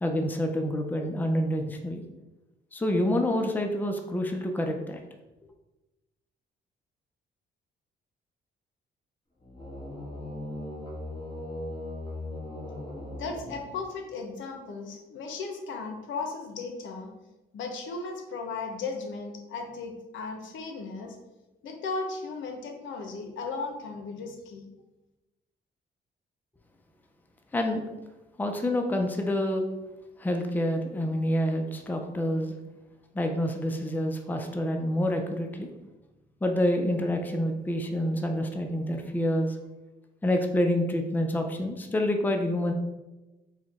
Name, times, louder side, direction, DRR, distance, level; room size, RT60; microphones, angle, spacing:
voice 1, 0.0-2.0 2.7-5.0 27.5-27.8 28.4-29.7 30.2-32.5 33.1-35.7 36.4-39.6 40.2-42.7, left 1 dB, 10° left, 4 dB, 0.5 m, -27 dB
sound 1, 9.4-14.1, left 1 dB, 25° left, 1.3 m, -38 dB
voice 2, 13.2-17.1 17.5-21.2 21.6-24.7, left 4 dB, 75° left, 4 dB, 0.8 m, -36 dB
4.8 x 2.2 x 4.1 m, 1.1 s
cardioid pair, 90°, 20 cm